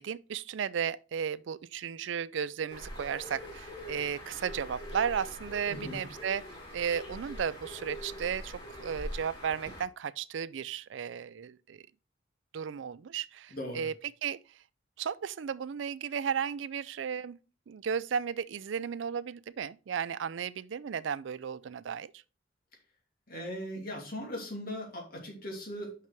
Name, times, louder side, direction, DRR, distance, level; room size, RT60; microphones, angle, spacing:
voice 1, 0.0-6.4 6.7-11.8 12.5-14.4 15.0-17.4 17.7-22.1, right 7 dB, 70° right, 0.4 m, -34 dB
Bird, 2.7-9.8, equal, 25° left, 2.9 m, -43 dB
voice 2, 5.7-6.0 13.5-13.9 23.3-25.9, equal, 50° left, 2.7 m, -39 dB
5.9 x 5.9 x 4.4 m
head